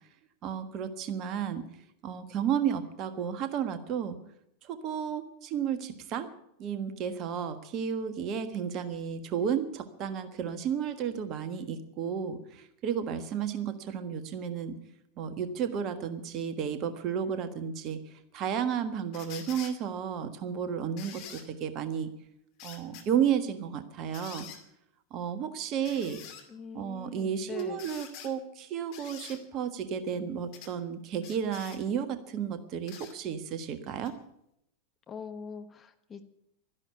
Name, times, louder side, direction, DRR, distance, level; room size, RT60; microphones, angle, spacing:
voice 1, 0.4-1.6 2.0-4.2 4.6-6.3 6.6-14.7 15.2-22.1 22.6-24.5 25.1-26.2 26.7-34.1, right 8 dB, 35° right, 10 dB, 1.5 m, -32 dB
sound 1, 19.1-19.7 21.0-21.4 22.6-23.1 24.1-24.6 25.8-26.4 27.6-28.3 28.9-29.4 30.5-30.7 31.2-31.8 32.9-33.1 34.0-34.1, left 9 dB, 45° left, 2.4 m, -46 dB
voice 2, 26.5-27.8 35.1-36.2, left 6 dB, 20° left, 7 dB, 1.3 m, -42 dB
13.0 x 11.0 x 9.2 m, 0.77 s
figure-of-eight pair, 90°, 0 cm